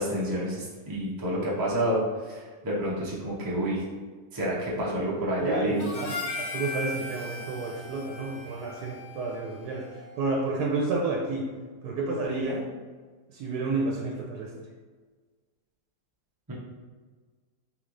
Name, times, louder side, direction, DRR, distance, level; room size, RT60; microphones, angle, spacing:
voice 1, 0.0-3.8 4.3-6.0 16.5-16.6, equal, 20° right, -6 dB, 0.7 m, -29 dB
voice 2, 5.4-11.5 11.8-12.7 13.3-14.5, right 3 dB, 85° right, 0 dB, 1.1 m, -30 dB
Harmonica, 5.8-10.3, left 2 dB, 80° left, 0.4 m, -38 dB
3.3 x 3.1 x 3.8 m, 1.5 s
omnidirectional pair, 1.6 m